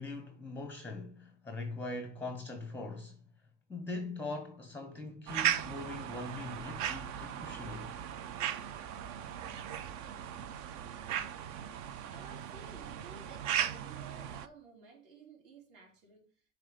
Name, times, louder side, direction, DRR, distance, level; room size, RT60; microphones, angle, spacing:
voice 1, 0.0-3.2 3.7-8.0, left 2 dB, 5° left, 0.7 m, -41 dB
sound 1, 5.3-14.5, right 10 dB, 45° right, 0.6 m, -37 dB
voice 2, 12.1-16.3, right 4 dB, 60° right, 3.7 m, -55 dB
7.7 x 3.3 x 5.0 m
hypercardioid pair, 105°, 42 cm